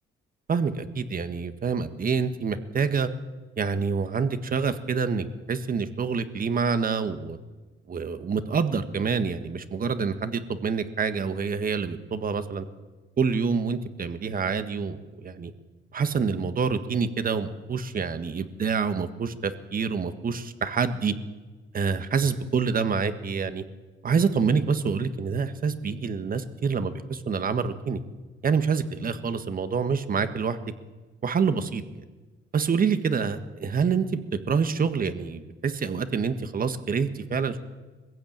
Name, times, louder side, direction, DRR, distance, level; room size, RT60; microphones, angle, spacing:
voice 1, 0.5-3.1 3.6-7.4 7.9-12.6 13.2-15.5 15.9-21.1 21.7-23.6 24.0-28.0 28.4-30.6 31.2-31.8 32.5-34.1 34.5-37.6, right 5 dB, 45° right, 10 dB, 1.7 m, -27 dB
21.5 x 15.5 x 8.9 m, 1.3 s
cardioid pair, 90°, 20 cm